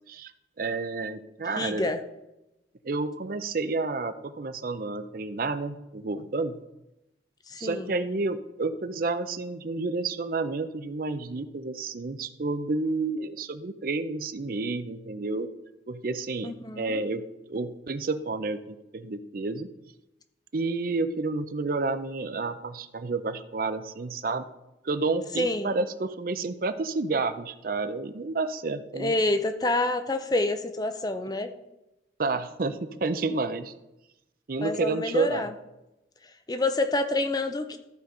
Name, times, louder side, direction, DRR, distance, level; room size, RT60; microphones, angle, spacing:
voice 1, 0.6-1.9 2.8-6.6 7.6-15.5 15.9-19.7 20.5-24.4 24.8-29.1 32.2-33.7 34.5-35.5, right 3 dB, 50° right, 11 dB, 0.5 m, -30 dB
voice 2, 1.5-2.0 7.5-7.9 16.4-17.0 25.4-25.7 29.0-31.5 34.6-35.5 36.5-37.8, left 2 dB, 20° left, 8 dB, 0.6 m, -27 dB
14.0 x 5.1 x 3.8 m, 0.93 s
head